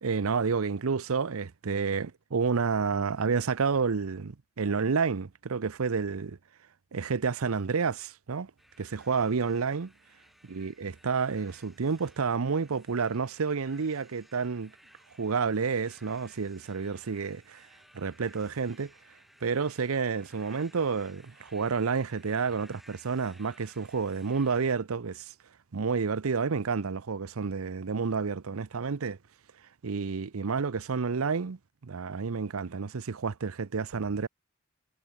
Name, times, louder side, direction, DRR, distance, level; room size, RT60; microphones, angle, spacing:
voice 1, 0.0-6.4 6.9-8.5 8.8-9.9 10.5-14.7 15.2-17.7 17.9-18.9 19.4-25.3 25.7-29.2 29.8-34.3, right 5 dB, 85° right, 0.7 m, -30 dB
sound 1, 8.6-24.8, equal, ahead, 3.6 m, -58 dB
head